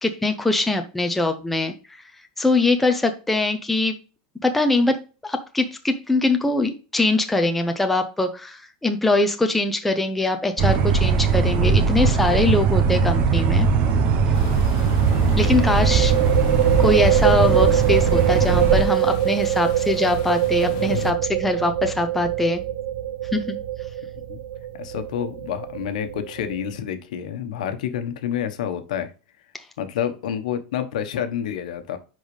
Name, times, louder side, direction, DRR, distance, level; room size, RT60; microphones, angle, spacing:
voice 1, 0.0-1.7 2.4-4.0 4.4-13.7 15.4-16.1 16.8-22.6 23.3-23.6, left 2 dB, 5° left, 5 dB, 0.6 m, -22 dB
sound 1, 10.6-18.8, right 5 dB, 35° right, 0.9 m, -19 dB
sound 2, 12.3-12.6 12.8-12.9 15.4-26.8, right 12 dB, 65° right, 0.7 m, -24 dB
sound 3, 14.3-21.1, left 9 dB, 50° left, 1.2 m, -37 dB
voice 2, 24.7-29.1 29.8-32.0, left 9 dB, 80° left, 8 dB, 1.1 m, -28 dB
10.5 x 4.0 x 3.2 m, 0.34 s
supercardioid pair, 170°, 4 cm